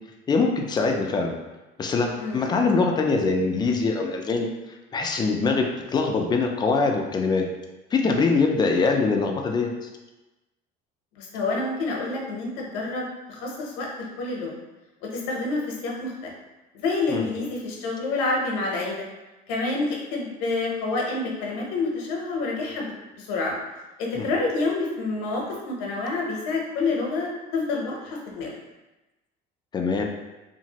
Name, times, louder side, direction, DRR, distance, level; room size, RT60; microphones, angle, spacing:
voice 1, 0.3-1.3 1.8-4.5 4.9-7.5 7.9-9.7 17.1-17.3 24.1-24.3 29.7-30.0, left 4 dB, 20° left, 2 dB, 0.4 m, -23 dB
voice 2, 2.2-2.5 11.2-14.5 15.0-16.3 16.7-19.0 19.5-22.9 23.2-23.5 24.0-28.5, left 3 dB, 85° left, -1 dB, 0.8 m, -28 dB
2.9 x 2.5 x 2.8 m, 1.1 s
cardioid pair, 125°, 20 cm